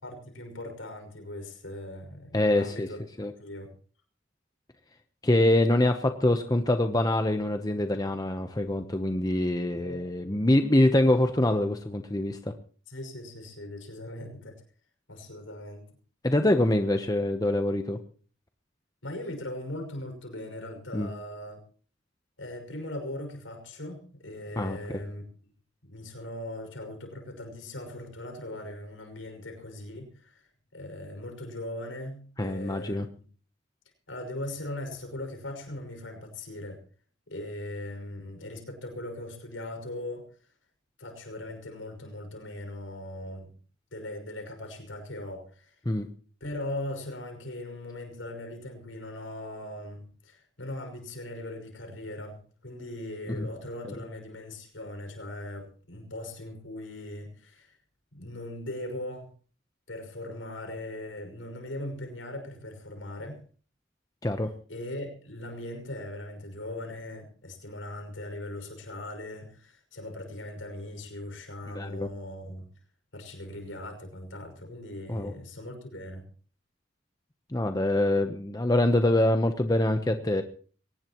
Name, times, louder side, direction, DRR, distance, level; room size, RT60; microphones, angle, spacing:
voice 1, 0.0-3.0 3.4-3.7 9.7-10.0 12.9-14.6 15.1-15.9 19.0-21.6 22.4-25.5 25.8-33.2 34.1-36.8 37.3-40.3 41.0-43.5 43.9-45.7 46.4-57.8 58.1-59.3 59.9-63.4 64.7-72.7 73.1-76.3, left 1 dB, 85° left, 5 dB, 5.9 m, -39 dB
voice 2, 2.3-2.9 3.2-3.3 5.2-12.4 16.2-18.0 20.9-21.1 24.6-24.8 32.4-33.1 45.9-46.1 53.3-53.5 64.2-64.5 71.7-72.1 75.1-75.3 77.5-80.4, left 1 dB, 20° left, 6 dB, 0.9 m, -24 dB
22.0 x 19.0 x 3.1 m, 0.42 s
head